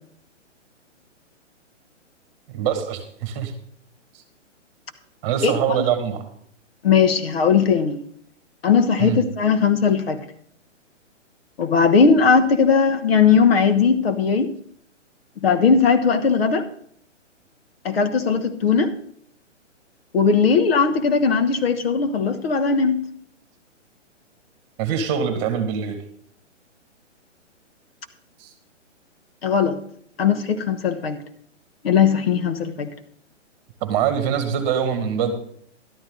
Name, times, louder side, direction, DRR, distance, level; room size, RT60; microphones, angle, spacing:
voice 1, 2.5-3.5 5.2-6.2 9.0-9.2 24.8-26.0 28.4-28.5 33.8-35.3, right 8 dB, 25° right, 8 dB, 1.8 m, -23 dB
voice 2, 6.8-8.0 8.6-10.2 11.6-14.5 15.4-16.6 17.8-18.9 20.1-23.0 29.4-29.8 30.2-31.2 31.8-32.9, left 6 dB, 55° left, 9 dB, 1.2 m, -18 dB
12.5 x 11.5 x 3.9 m, 0.63 s
hypercardioid pair, 145°, 37 cm